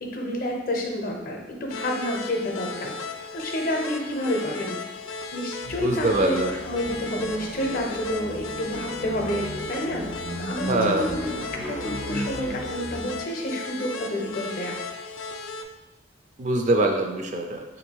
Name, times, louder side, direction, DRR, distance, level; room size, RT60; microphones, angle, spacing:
voice 1, 0.0-2.9 3.3-4.8 5.3-10.0 10.4-11.3 11.7-11.8 12.1-14.7, left 1 dB, 45° left, 1 dB, 0.6 m, -29 dB
sound 1, 1.7-15.6, left 3 dB, 85° left, 0.3 m, -36 dB
sound 2, 5.6-13.3, equal, 90° right, 0.9 m, -35 dB
voice 2, 5.8-6.5 10.7-11.2 16.4-17.6, right 2 dB, 35° right, 3 dB, 0.3 m, -23 dB
3.5 x 2.6 x 4.5 m, 1.1 s
head